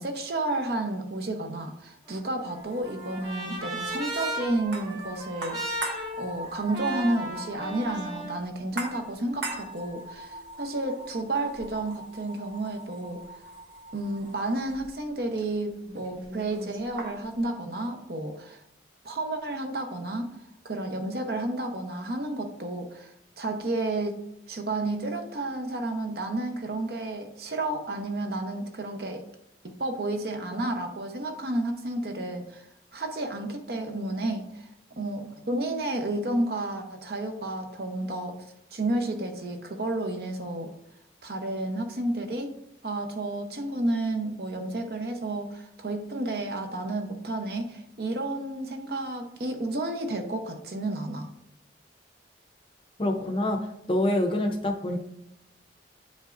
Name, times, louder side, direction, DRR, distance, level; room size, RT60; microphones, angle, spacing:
voice 1, 0.0-5.9 6.2-13.2 13.9-18.6 19.0-20.3 20.6-24.1 24.5-29.2 29.6-32.6 32.9-34.7 35.0-38.3 38.7-40.7 41.2-42.5 42.8-51.3, right 2 dB, 55° right, 4 dB, 0.8 m, -31 dB
Trumpet, 2.1-8.4, right 1 dB, 20° right, 1.3 m, -36 dB
sound 1, 2.5-17.4, right 2 dB, 80° right, 1.5 m, -41 dB
voice 2, 53.0-53.6 53.9-55.0, left 1 dB, 30° left, 3 dB, 0.6 m, -26 dB
9.0 x 5.3 x 2.6 m, 0.80 s
head